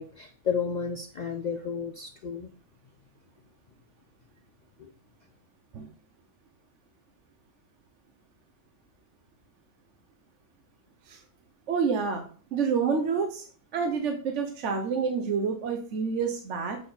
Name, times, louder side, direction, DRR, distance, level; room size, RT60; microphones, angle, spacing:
voice 1, 0.0-2.5 4.8-4.9, left 6 dB, 80° left, 5 dB, 0.4 m, -32 dB
voice 2, 11.7-12.2 12.5-13.5 13.7-16.8, right 5 dB, 60° right, 4 dB, 1.1 m, -28 dB
7.7 x 4.1 x 3.9 m, 0.43 s
omnidirectional pair, 1.5 m